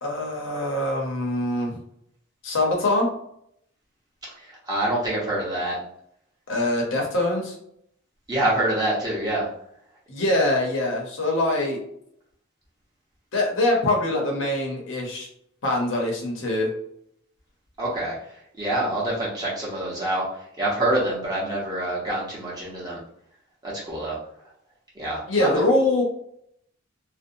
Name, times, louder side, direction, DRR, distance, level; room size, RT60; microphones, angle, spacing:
voice 1, 0.0-1.8 2.4-3.1 6.5-7.5 10.1-11.8 13.3-15.3 15.6-16.7 25.3-26.0, left 1 dB, 75° left, -1 dB, 0.8 m, -23 dB
voice 2, 4.4-5.8 8.3-9.5 17.8-18.1 18.6-20.2 20.6-23.0 23.6-24.2 24.9-25.6, right 1 dB, 20° right, -6 dB, 0.9 m, -26 dB
2.6 x 2.1 x 2.6 m, 0.70 s
head